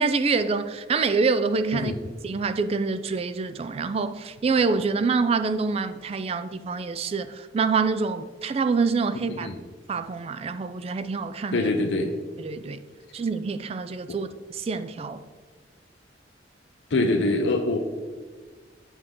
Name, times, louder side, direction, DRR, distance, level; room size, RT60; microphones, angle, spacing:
voice 1, 0.0-1.9 2.2-9.5 9.9-11.7 12.4-12.8 13.1-15.2, right 4 dB, 35° right, 0.3 m, -26 dB
voice 2, 11.5-12.1 14.1-14.2 16.9-17.8, left 2 dB, 90° left, 0.6 m, -24 dB
7.9 x 6.4 x 3.7 m
head